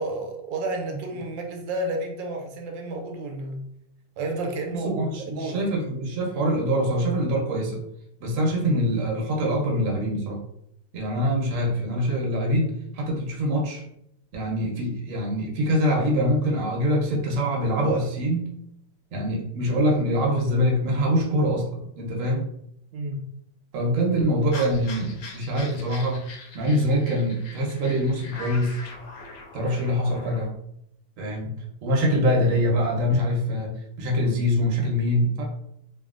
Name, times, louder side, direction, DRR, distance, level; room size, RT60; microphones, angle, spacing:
voice 1, 0.0-3.6 4.2-5.1 5.3-5.6 22.9-23.2, right 2 dB, 85° right, 3 dB, 1.3 m, -31 dB
voice 2, 4.8-7.8 8.2-10.4 10.9-13.8 14.3-18.5 19.1-22.4 23.7-26.2 26.5-28.8 29.5-30.5 31.2-35.4, equal, 55° right, -1 dB, 0.9 m, -24 dB
sound 1, 24.5-30.5, left 3 dB, 80° left, 1.2 m, -42 dB
2.8 x 2.7 x 2.4 m, 0.74 s
omnidirectional pair, 1.9 m